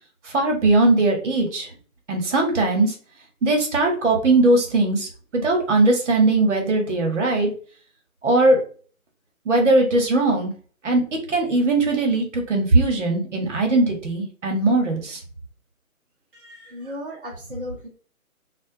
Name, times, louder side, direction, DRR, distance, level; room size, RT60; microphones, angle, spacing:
voice 1, 0.3-1.7 2.1-2.9 3.4-7.5 8.2-8.6 9.5-10.5 10.8-11.0 11.3-15.2, right 2 dB, 55° right, 2 dB, 0.9 m, -19 dB
voice 2, 16.4-17.9, left 1 dB, 40° right, -5 dB, 0.5 m, -35 dB
2.3 x 2.1 x 2.6 m, 0.41 s
hypercardioid pair, 160°, 42 cm